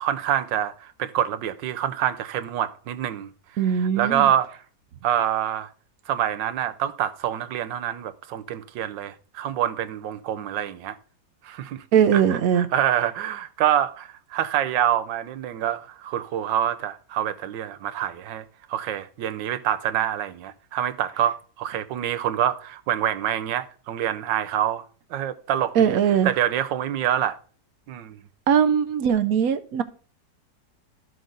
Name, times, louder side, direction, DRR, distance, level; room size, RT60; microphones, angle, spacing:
voice 1, 0.0-3.3 3.6-4.5 5.0-5.7 6.1-11.0 11.4-11.8 12.1-24.8 25.1-26.0 26.2-27.4 27.9-28.2, right 10 dB, 85° right, 1.4 m, -26 dB
voice 2, 3.6-4.3 11.9-12.7 25.7-26.3 28.5-29.8, right 8 dB, 65° right, 1.0 m, -20 dB
12.5 x 6.4 x 3.9 m
omnidirectional pair, 1.9 m